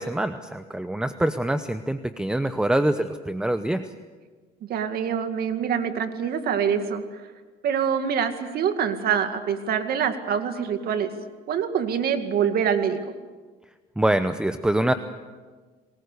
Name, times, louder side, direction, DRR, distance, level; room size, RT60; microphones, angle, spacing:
voice 1, 0.0-3.9 14.0-14.9, right 1 dB, 5° right, 10 dB, 0.9 m, -25 dB
voice 2, 4.7-7.0 7.6-11.1 11.5-13.0, right 7 dB, 65° right, 8 dB, 2.2 m, -25 dB
29.0 x 20.0 x 6.8 m, 1.4 s
cardioid pair, 110°, 17 cm